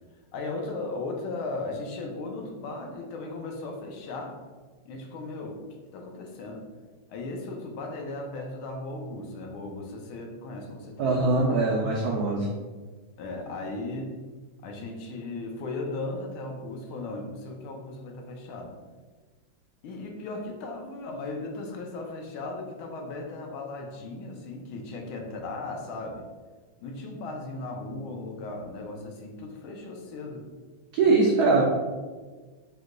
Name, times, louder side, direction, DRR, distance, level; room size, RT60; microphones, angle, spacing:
voice 1, 0.3-4.4 4.8-5.6 5.9-6.7 7.1-11.6 13.2-14.1 14.6-18.7 19.8-26.3 26.8-30.5 31.0-31.4, left 2 dB, 85° left, 1 dB, 1.5 m, -37 dB
voice 2, 11.0-12.5 30.9-31.6, right 3 dB, 90° right, -1 dB, 0.8 m, -22 dB
4.9 x 2.2 x 3.7 m, 1.4 s
omnidirectional pair, 2.2 m